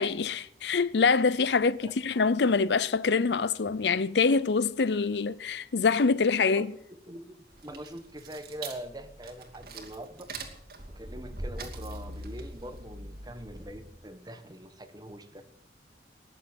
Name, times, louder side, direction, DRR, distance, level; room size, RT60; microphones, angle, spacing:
voice 1, 0.0-6.7, left 4 dB, 70° left, 0.6 m, -25 dB
voice 2, 7.1-7.4 7.6-10.3 10.9-15.4, right 1 dB, 20° right, 1.3 m, -43 dB
sound 1, 7.5-14.1, right 2 dB, 55° right, 2.6 m, -42 dB
19.5 x 7.8 x 7.9 m
head